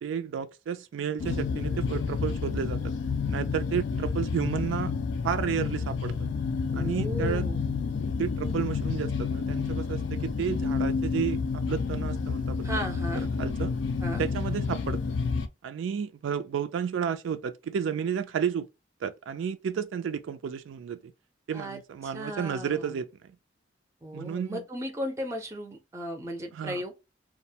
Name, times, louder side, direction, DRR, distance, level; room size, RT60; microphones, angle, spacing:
voice 1, 0.0-2.8 3.3-4.9 5.2-6.1 6.7-7.4 8.2-12.8 13.1-13.7 14.2-15.0 15.6-18.7 19.0-21.1 21.5-23.3 24.1-24.6 26.5-26.8, right 7 dB, 85° right, 0.3 m, -32 dB
sound 1, 1.2-15.5, left 5 dB, 75° left, 0.3 m, -30 dB
voice 2, 6.7-7.7 12.6-13.3 14.0-14.2 21.5-23.0 24.0-27.0, equal, 15° right, 0.5 m, -36 dB
2.4 x 2.0 x 2.7 m
head